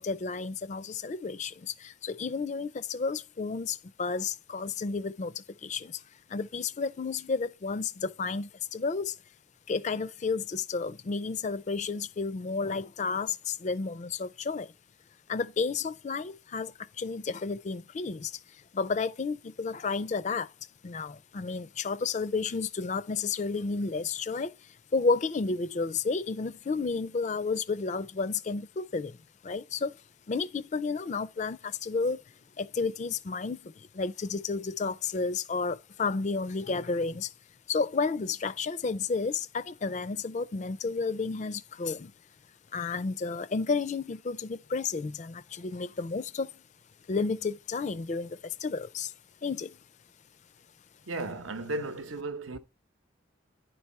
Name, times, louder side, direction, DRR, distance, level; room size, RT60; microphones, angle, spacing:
voice 1, 0.0-6.0 6.3-9.2 9.7-14.7 15.3-18.4 18.7-20.5 20.8-24.5 24.9-29.2 29.4-30.0 30.3-32.2 32.6-37.3 37.7-42.1 42.7-46.5 47.1-49.1 49.4-49.7, left 4 dB, 35° left, 0.3 m, -31 dB
voice 2, 51.1-52.6, right 2 dB, 80° right, 0.8 m, -35 dB
10.0 x 4.6 x 4.2 m
head